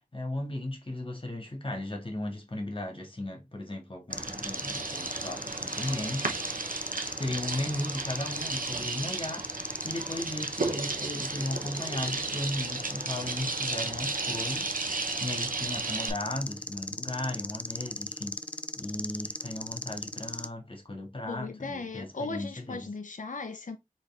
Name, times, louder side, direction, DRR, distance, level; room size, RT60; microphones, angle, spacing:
voice 1, 0.1-6.4 6.6-6.7 7.2-9.5 9.8-14.7 15.2-18.4 18.8-22.9, left 1 dB, 40° left, 1.8 m, -36 dB
sound 1, 4.1-20.5, left 1 dB, 10° left, 0.4 m, -38 dB
sound 2, 4.1-16.1, right 3 dB, 80° right, 1.0 m, -34 dB
voice 2, 21.2-23.8, left 3 dB, 65° left, 0.6 m, -37 dB
4.2 x 3.3 x 3.4 m
wide cardioid pair, 55°, 14 cm